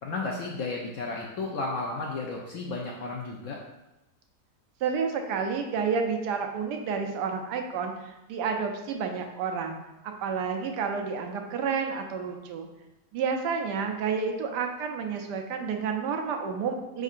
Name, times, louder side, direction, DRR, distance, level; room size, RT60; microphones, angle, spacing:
voice 1, 0.0-3.6, left 3 dB, 70° left, -1 dB, 0.7 m, -33 dB
voice 2, 4.8-9.8 10.0-12.7 13.1-17.0, right 5 dB, 85° right, 4 dB, 1.2 m, -30 dB
5.2 x 3.7 x 2.4 m, 0.96 s
omnidirectional pair, 1.8 m